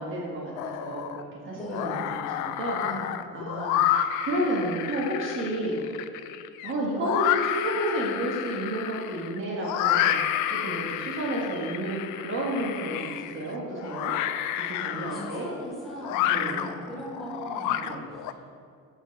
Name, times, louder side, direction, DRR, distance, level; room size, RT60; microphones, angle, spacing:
voice 1, 0.0-2.8 3.3-5.8 6.6-10.2 10.5-14.1 14.6-15.5 16.2-16.7 17.8-18.0, right 1 dB, 40° right, -4 dB, 1.4 m, -31 dB
sound 1, 0.6-1.2 1.6-18.3, left 11 dB, 75° left, 0.5 m, -30 dB
voice 2, 1.6-2.2 2.8-3.2 14.9-18.3, equal, ahead, -7 dB, 2.1 m, -39 dB
6.4 x 6.4 x 5.3 m, 2.3 s
cardioid pair, 145°, 31 cm